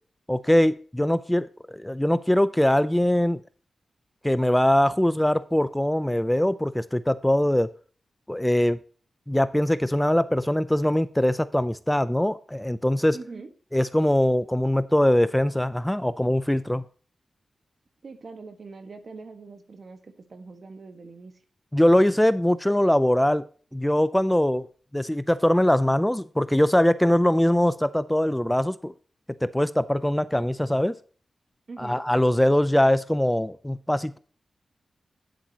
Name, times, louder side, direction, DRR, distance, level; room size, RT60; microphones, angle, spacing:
voice 1, 0.3-3.4 4.2-7.7 8.3-8.8 9.3-13.2 13.7-16.8 21.7-23.5 23.7-24.7 24.9-28.9 29.4-31.0 31.8-34.2, left 1 dB, 5° left, 14 dB, 0.4 m, -22 dB
voice 2, 13.1-13.5 18.0-21.4 31.7-32.0, right 4 dB, 55° right, 8 dB, 1.5 m, -42 dB
10.0 x 8.7 x 2.9 m, 0.41 s
wide cardioid pair, 80°, 0 cm